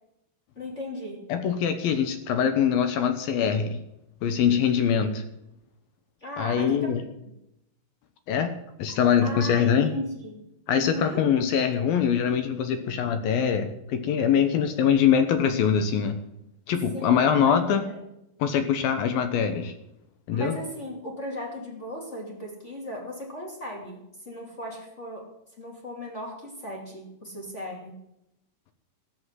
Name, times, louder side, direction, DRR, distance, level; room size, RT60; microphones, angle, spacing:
voice 1, 0.5-1.2 6.2-7.0 7.3-7.4 9.2-10.5 10.8-11.3 16.9-17.6 17.8-18.0 20.3-25.3 25.6-28.0, left 1 dB, 20° left, 0 dB, 2.4 m, -37 dB
voice 2, 1.3-3.8 4.2-5.2 6.4-7.0 8.3-8.5 8.8-9.9 10.7-16.2 16.7-17.8 18.4-19.7 20.3-20.6, left 8 dB, 70° left, 8 dB, 2.4 m, -23 dB
13.5 x 8.5 x 7.5 m, 0.84 s
omnidirectional pair, 5.2 m